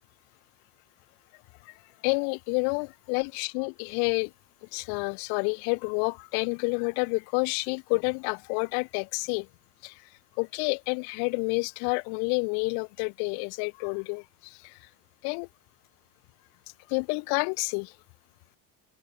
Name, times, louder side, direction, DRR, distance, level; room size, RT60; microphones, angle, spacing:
voice 1, 2.0-4.3 4.7-9.5 9.8-10.0 10.4-14.8 15.2-15.5 16.9-17.9, left 40 dB or more, 85° left, 1.5 m, -29 dB
cardioid pair, 120°, 37 cm